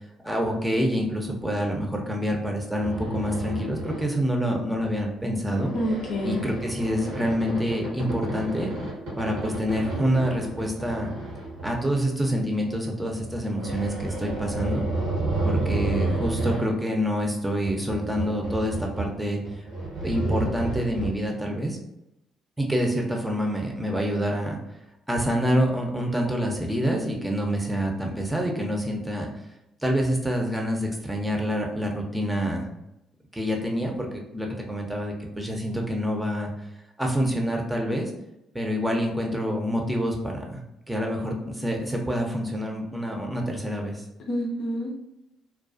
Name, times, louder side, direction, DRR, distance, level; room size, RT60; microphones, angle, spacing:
voice 1, 0.2-5.7 6.2-8.7 9.2-11.1 11.6-14.8 15.4-19.6 20.0-21.8 22.6-24.6 25.1-29.3 29.8-32.7 33.3-34.1 34.3-36.5 37.0-38.1 38.5-40.6 40.9-44.0, equal, 10° right, 1 dB, 0.6 m, -27 dB
sound 1, 2.7-4.2 4.7-5.0 5.5-12.2 13.0-16.6 17.5-19.2 19.4-21.1, right 2 dB, 75° right, 0.9 m, -31 dB
voice 2, 5.7-6.5 44.2-45.0, equal, 60° left, 0 dB, 0.5 m, -28 dB
2.3 x 2.2 x 2.5 m, 0.88 s
hypercardioid pair, 50°, 0 cm